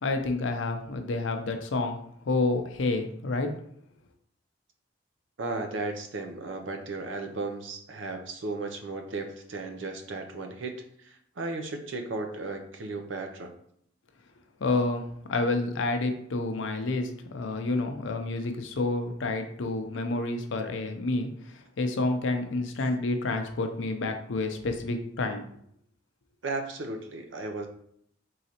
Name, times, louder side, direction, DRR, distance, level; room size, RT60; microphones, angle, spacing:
voice 1, 0.0-3.6 14.6-25.4, left 2 dB, 85° left, 6 dB, 0.5 m, -29 dB
voice 2, 5.4-13.5 26.4-27.7, right 3 dB, 90° right, 5 dB, 0.6 m, -35 dB
3.9 x 3.1 x 2.9 m, 0.70 s
head